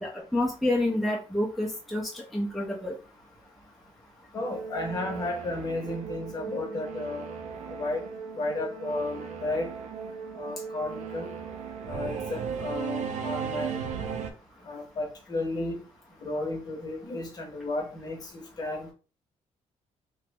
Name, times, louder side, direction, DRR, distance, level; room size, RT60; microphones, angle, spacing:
voice 1, 0.0-2.9, left 1 dB, ahead, 0.4 m, -28 dB
voice 2, 4.3-7.3 7.7-8.0 8.3-9.7 10.4-11.3 11.8-13.8 14.6-15.8 16.2-18.9, left 2 dB, 35° left, 0.8 m, -33 dB
Singing / Musical instrument, 4.4-14.3, right 6 dB, 75° right, 0.5 m, -36 dB
2.9 x 2.0 x 3.3 m
cardioid pair, 170°, 12 cm